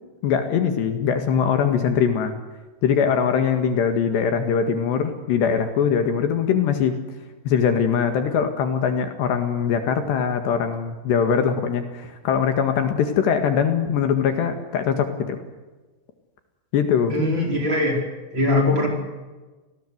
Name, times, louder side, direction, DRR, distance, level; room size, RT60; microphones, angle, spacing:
voice 1, 0.2-2.4 2.8-7.0 7.5-15.4 16.7-17.2, left 7 dB, 65° left, 8 dB, 3.8 m, -22 dB
voice 2, 17.1-18.0 18.3-18.9, left 2 dB, 25° right, 2 dB, 5.2 m, -21 dB
27.5 x 20.0 x 8.0 m, 1.2 s
omnidirectional pair, 5.6 m